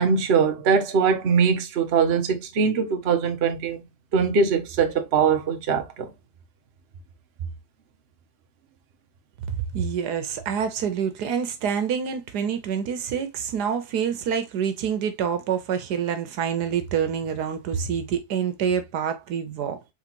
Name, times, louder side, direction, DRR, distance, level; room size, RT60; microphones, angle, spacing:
voice 1, 0.0-3.8 4.1-6.1, right 6 dB, 50° right, 0.8 m, -22 dB
voice 2, 9.7-19.8, right 7 dB, 75° right, 1.3 m, -27 dB
4.0 x 3.8 x 2.9 m
omnidirectional pair, 1.8 m